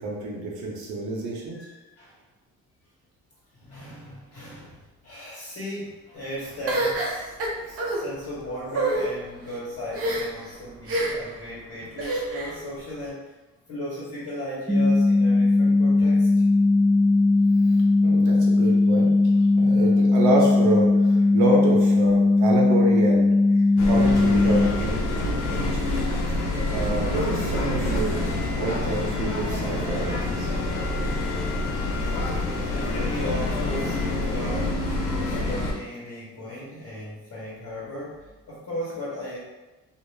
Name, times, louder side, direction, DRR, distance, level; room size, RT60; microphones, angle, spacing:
voice 1, 0.0-1.6 18.0-19.1 19.6-23.3 23.5-25.9 26.3-28.3 28.5-30.5, right 2 dB, 80° right, -2 dB, 0.8 m, -28 dB
voice 2, 1.5-2.2 3.5-13.3 13.7-16.4 32.2-39.4, equal, 55° left, -7 dB, 1.2 m, -36 dB
sound 1, 6.7-8.0 8.7-9.0 9.9-10.4 10.9-11.3 12.0-12.6, right 2 dB, 50° right, 0.7 m, -26 dB
sound 2, 14.7-24.7, left 2 dB, 5° right, 0.3 m, -19 dB
sound 3, 23.8-35.7, left 2 dB, 90° left, 0.6 m, -27 dB
2.4 x 2.1 x 3.2 m, 1.1 s
cardioid pair, 90°, 30 cm